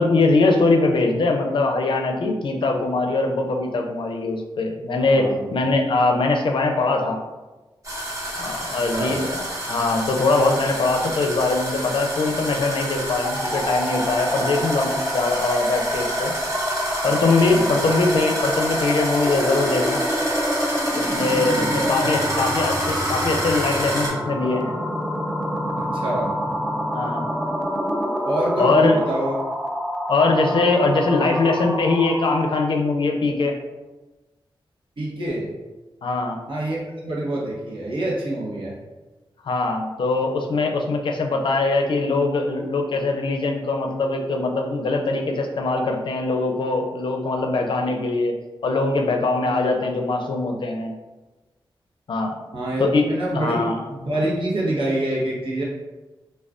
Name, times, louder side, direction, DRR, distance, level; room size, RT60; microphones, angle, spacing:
voice 1, 0.0-5.3 5.5-7.2 8.4-16.3 17.0-20.0 20.9-24.8 26.9-27.3 28.6-29.0 30.1-33.5 36.0-36.4 39.4-48.3 48.6-50.9 52.1-52.3 52.8-53.0 53.3-53.8, left 3 dB, 65° left, 3 dB, 0.4 m, -22 dB
voice 2, 5.0-5.5 8.9-9.1 17.5-17.8 21.5-22.4 25.8-26.3 28.2-29.3 35.0-35.5 36.5-38.7 52.5-55.6, right 1 dB, 65° right, -5 dB, 0.8 m, -26 dB
sound 1, 7.8-24.1, right 1 dB, 35° right, 1.0 m, -29 dB
sound 2, 13.2-32.5, equal, 5° right, 0.4 m, -27 dB
2.4 x 2.2 x 3.5 m, 1.1 s
wide cardioid pair, 85°, 9 cm